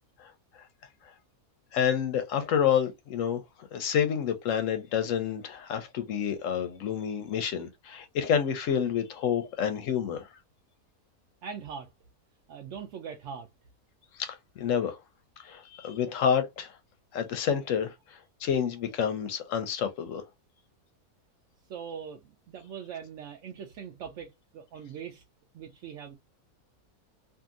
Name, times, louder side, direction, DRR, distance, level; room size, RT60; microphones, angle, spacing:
voice 1, 1.7-3.4 3.7-10.3 14.2-15.0 15.4-16.7 17.1-17.9 18.4-20.2, left 8 dB, 70° left, 0.8 m, -28 dB
voice 2, 11.4-11.9 12.5-13.5 21.7-25.2 25.5-26.2, right 7 dB, 70° right, 0.8 m, -41 dB
2.8 x 2.5 x 2.3 m
omnidirectional pair, 1.6 m